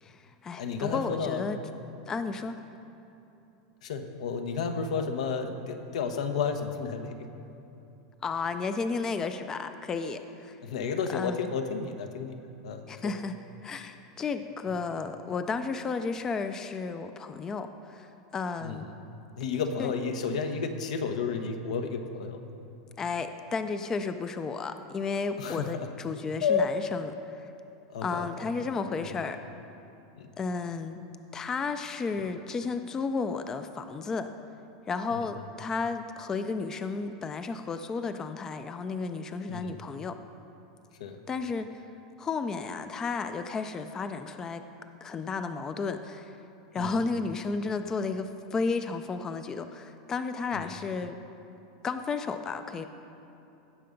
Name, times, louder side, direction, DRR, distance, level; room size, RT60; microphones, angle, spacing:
voice 1, 0.0-1.6 2.1-2.6 8.2-10.6 11.1-11.5 12.9-13.4 13.6-18.9 19.8-19.9 23.0-27.5 28.0-29.4 30.4-31.0 31.3-34.3 34.9-40.2 41.3-41.7 42.2-44.6 45.0-46.4 46.7-51.2 51.8-52.9, left 4 dB, 15° left, 9 dB, 0.4 m, -33 dB
voice 2, 0.6-1.4 3.8-7.3 10.6-12.3 12.6-13.1 18.6-19.0 19.4-22.4 25.4-25.9 26.4-26.8 27.9-28.3 29.0-29.2 30.2-30.3 35.1-35.3 39.5-39.8 41.0-41.2 46.8-47.0 50.5-50.7, left 5 dB, 80° left, 6 dB, 1.1 m, -32 dB
17.0 x 6.8 x 5.2 m, 2.8 s
supercardioid pair, 160°, 3 cm